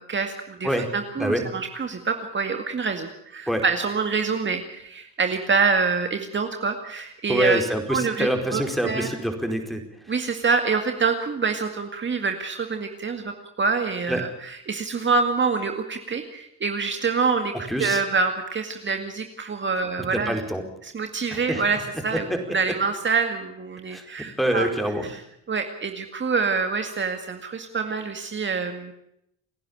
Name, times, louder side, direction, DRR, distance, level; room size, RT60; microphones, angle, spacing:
voice 1, 0.0-7.6 7.9-9.1 10.1-20.4 20.8-24.7 25.0-25.2 25.5-28.9, right 5 dB, 40° right, 5 dB, 2.1 m, -26 dB
voice 2, 7.3-10.1 14.1-14.2 17.7-18.0 20.3-20.6 21.3-21.6 23.9-24.0 24.4-25.1, equal, ahead, 5 dB, 4.8 m, -25 dB
30.0 x 11.0 x 8.9 m, 0.76 s
cardioid pair, 90°, 30 cm